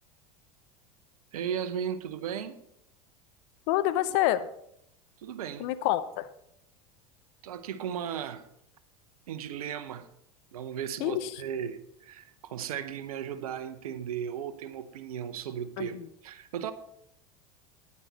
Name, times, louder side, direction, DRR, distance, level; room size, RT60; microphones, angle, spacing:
voice 1, 1.3-2.6 5.2-5.7 7.4-8.4 9.3-10.1 10.5-16.0 16.2-16.7, right 8 dB, 80° right, 0.9 m, -36 dB
voice 2, 3.7-4.5 5.6-6.3 11.0-11.3 15.8-15.9, left 14 dB, 60° left, 0.7 m, -27 dB
10.0 x 9.6 x 4.1 m
hypercardioid pair, 85°, 18 cm